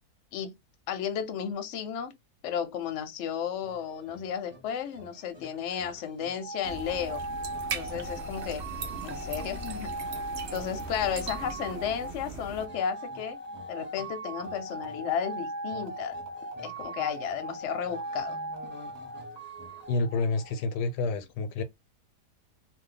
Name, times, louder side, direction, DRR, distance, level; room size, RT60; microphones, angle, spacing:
voice 1, 0.9-2.1 2.4-7.2 7.7-8.6 9.0-9.9 10.5-13.4 13.7-16.1 16.6-18.4, left 8 dB, 60° left, 0.8 m, -33 dB
sound 1, 3.6-20.0, equal, 10° right, 1.0 m, -53 dB
sound 2, 6.4-20.9, right 2 dB, 30° right, 1.1 m, -39 dB
sound 3, 6.6-12.7, right 4 dB, 70° right, 0.6 m, -39 dB
voice 2, 19.9-21.6, left 3 dB, 85° left, 1.2 m, -29 dB
2.6 x 2.3 x 3.8 m
omnidirectional pair, 1.7 m